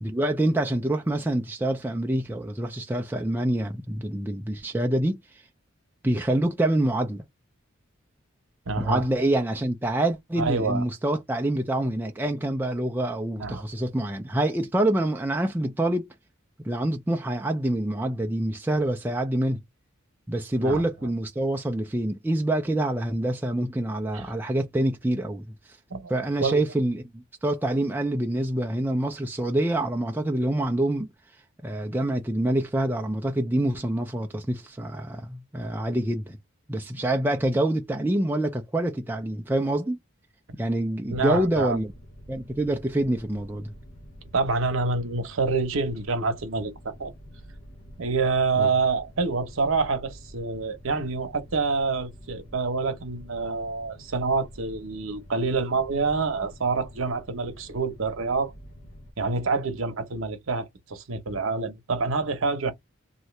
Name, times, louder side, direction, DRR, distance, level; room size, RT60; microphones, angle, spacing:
voice 1, 0.0-5.2 6.0-7.2 8.8-16.1 16.6-19.6 20.3-25.4 26.1-31.1 31.6-36.4 36.7-40.0 40.5-41.9 42.3-43.7 48.6-48.7, right 1 dB, 10° right, 0.3 m, -26 dB
voice 2, 8.7-9.0 10.4-10.8 13.4-13.6 20.6-20.9 24.1-24.2 25.9-26.1 26.4-26.6 41.1-41.8 44.3-47.1 48.0-58.5 59.2-62.7, right 4 dB, 70° right, 0.8 m, -27 dB
sound 1, 41.1-59.1, equal, 80° left, 0.9 m, -47 dB
2.7 x 2.4 x 3.1 m
head